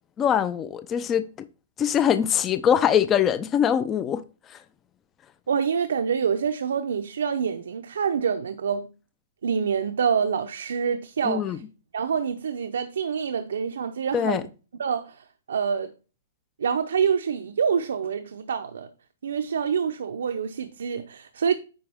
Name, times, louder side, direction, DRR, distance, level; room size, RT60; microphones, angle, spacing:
voice 1, 0.2-1.3 1.8-4.2 4.5-4.6 11.2-11.6 14.1-14.4, left 9 dB, 15° left, 0.4 m, -22 dB
voice 2, 5.5-8.9 9.4-11.6 11.9-14.4 14.8-15.9 16.6-18.9 19.2-21.5, right 6 dB, 90° right, 0.7 m, -26 dB
9.5 x 5.2 x 3.5 m
hypercardioid pair, 165°, 0 cm